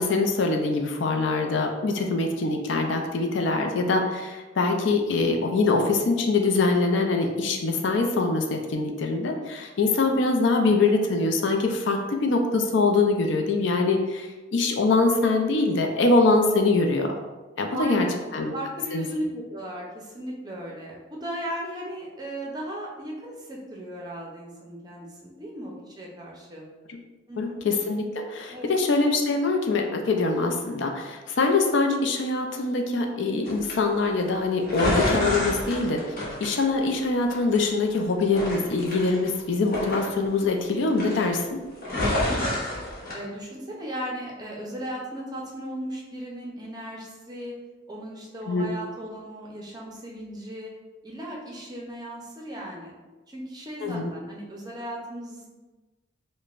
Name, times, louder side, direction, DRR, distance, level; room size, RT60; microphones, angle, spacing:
voice 1, 0.0-17.1 17.6-18.1 18.3-18.5 18.9-19.0 26.9-27.0 27.4-41.4 48.5-48.7 53.8-54.1, left 3 dB, 70° left, 3 dB, 0.4 m, -24 dB
voice 2, 17.7-18.2 18.5-26.6 27.3-27.6 28.5-28.7 41.9-42.5 43.1-47.5 47.9-50.7 51.0-52.9 53.3-55.5, right 1 dB, 20° right, -2 dB, 0.5 m, -36 dB
sound 1, 33.4-33.7 34.6-37.0 37.3-38.0 38.3-40.7 40.9-41.4 41.8-43.1, left 1 dB, 45° left, 0.8 m, -28 dB
5.0 x 2.1 x 2.4 m, 1.2 s
head